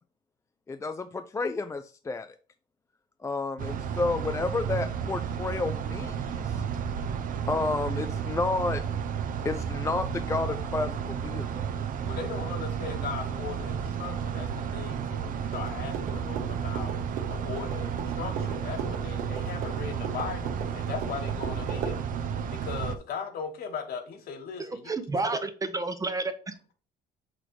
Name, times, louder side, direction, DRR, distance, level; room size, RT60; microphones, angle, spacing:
voice 1, 0.7-2.3 3.2-6.6 7.5-8.8 9.4-11.5, left 3 dB, 15° left, 0.4 m, -31 dB
sound 1, 3.6-23.0, right 7 dB, 55° right, 0.7 m, -32 dB
voice 2, 12.1-16.9 17.3-22.0 22.5-25.2, left 6 dB, 65° left, 1.4 m, -38 dB
sound 2, 15.5-22.0, right 5 dB, 85° right, 1.6 m, -38 dB
voice 3, 24.6-26.7, right 3 dB, 20° right, 0.7 m, -31 dB
6.1 x 3.3 x 4.7 m
cardioid pair, 110°, 17 cm